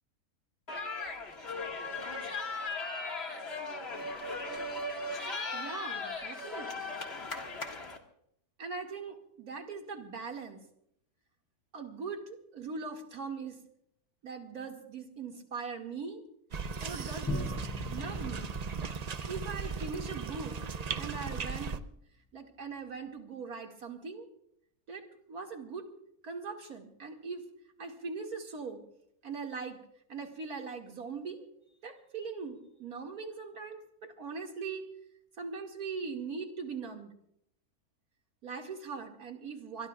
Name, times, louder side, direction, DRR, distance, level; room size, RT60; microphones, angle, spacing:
sound 1, 0.7-8.0, left 3 dB, 45° left, 2.1 m, -37 dB
voice 1, 5.5-6.9 8.6-10.6 11.7-13.6 14.2-16.2 16.8-17.5 17.9-18.5 19.3-20.6 21.0-21.8 22.3-24.3 24.9-25.9 26.2-27.5 27.8-28.8 29.2-29.8 30.1-31.5 31.8-34.9 35.4-37.1 38.4-39.9, right 5 dB, 75° right, 2 dB, 2.6 m, -40 dB
sound 2, 16.5-21.8, right 5 dB, 55° right, 0.4 m, -37 dB
Bowed string instrument, 17.3-20.1, left 3 dB, 20° left, 0.3 m, -41 dB
25.0 x 21.5 x 2.4 m, 0.73 s
omnidirectional pair, 1.6 m